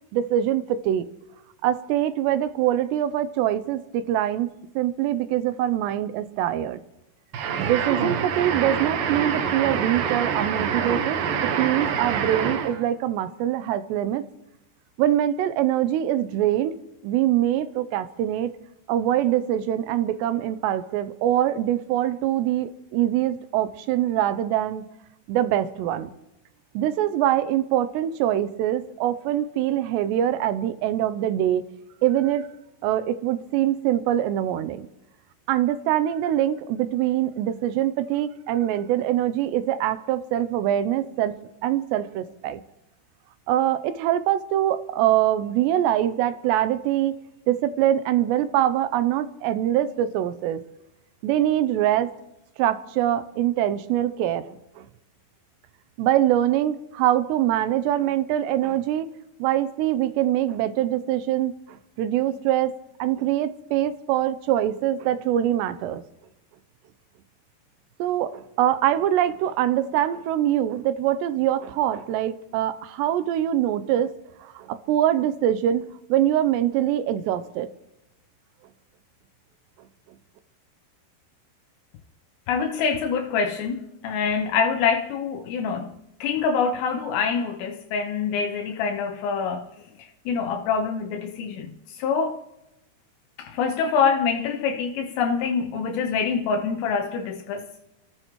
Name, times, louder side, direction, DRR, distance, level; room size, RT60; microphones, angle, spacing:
voice 1, 0.1-1.1 1.6-4.5 4.8-6.8 7.6-14.3 15.0-16.8 17.0-18.5 18.9-24.8 25.3-26.1 26.7-31.6 32.0-32.5 32.8-34.9 35.5-41.3 41.6-42.6 43.5-47.2 47.5-50.6 51.2-52.1 52.6-54.9 56.0-59.1 59.4-66.0 68.0-74.1 74.4-77.7, right 12 dB, 85° right, 2.9 m, -24 dB
sound 1, 7.3-12.8, right 7 dB, 65° right, 2.6 m, -26 dB
voice 2, 82.5-85.9 86.2-89.7 90.3-91.7 92.0-92.4 93.4-97.7, left 6 dB, 80° left, 3.0 m, -25 dB
29.5 x 14.5 x 3.1 m
omnidirectional pair, 4.9 m